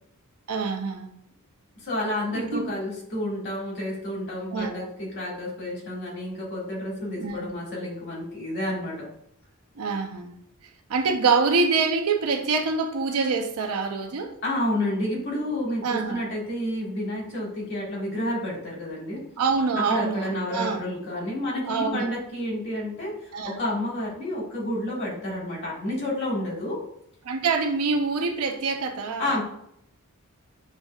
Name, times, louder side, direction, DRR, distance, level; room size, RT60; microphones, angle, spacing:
voice 1, 0.5-1.1 2.3-2.7 4.5-4.9 7.1-7.4 9.8-10.4 10.9-14.3 15.8-16.2 19.4-20.8 21.7-22.1 23.3-23.6 27.2-29.4, right 4 dB, 80° right, 4 dB, 0.6 m, -25 dB
voice 2, 1.8-9.0 14.4-19.2 19.7-26.8 29.2-29.4, left 1 dB, 50° left, -3 dB, 1.7 m, -30 dB
6.9 x 2.7 x 2.3 m, 0.71 s
head